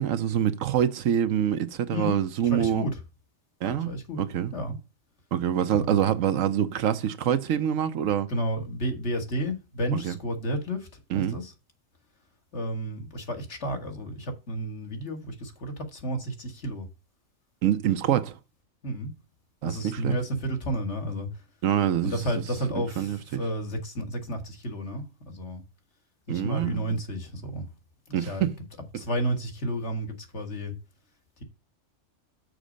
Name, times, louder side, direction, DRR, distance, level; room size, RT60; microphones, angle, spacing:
voice 1, 0.0-2.8 3.6-3.9 4.2-4.5 5.3-8.3 9.9-10.1 11.1-11.4 17.6-18.4 19.6-20.1 21.6-22.1 23.0-23.4 26.3-26.8 28.1-28.5, right 10 dB, 80° right, 1.1 m, -25 dB
voice 2, 2.4-3.0 3.6-4.2 4.5-4.8 5.7-6.0 8.3-11.5 12.5-16.9 18.8-19.1 19.6-21.4 22.0-25.6 26.3-27.7 28.1-28.5 28.9-30.7, equal, 60° left, 1.8 m, -32 dB
6.5 x 5.2 x 5.0 m
omnidirectional pair, 1.3 m